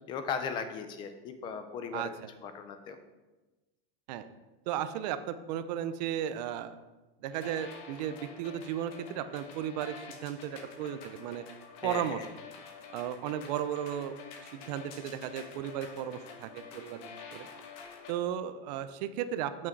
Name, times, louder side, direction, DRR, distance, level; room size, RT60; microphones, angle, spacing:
voice 1, 0.1-2.1 2.4-3.0 11.8-12.3, left 6 dB, 15° left, 9 dB, 0.4 m, -37 dB
voice 2, 1.9-2.3 4.1-4.3 4.7-6.8 7.2-11.4 11.8-12.2 12.9-14.1 14.5-17.5 18.1-19.7, right 10 dB, 45° right, 11 dB, 0.6 m, -35 dB
sound 1, 7.3-18.1, left 5 dB, 50° left, 1.3 m, -48 dB
8.5 x 6.2 x 4.5 m, 1.1 s
supercardioid pair, 175°, 29 cm